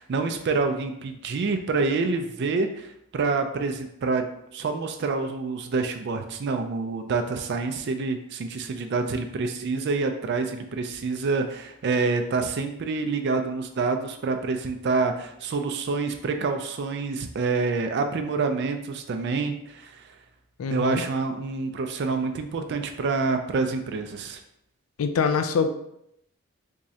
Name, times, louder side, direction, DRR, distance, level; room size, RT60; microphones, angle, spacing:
voice 1, 0.0-4.2 4.5-20.1 20.7-24.4, right 4 dB, 50° right, 6 dB, 0.3 m, -27 dB
voice 2, 20.6-21.0 25.0-25.7, left 5 dB, 70° left, 8 dB, 0.4 m, -24 dB
3.6 x 3.1 x 2.7 m, 0.77 s
head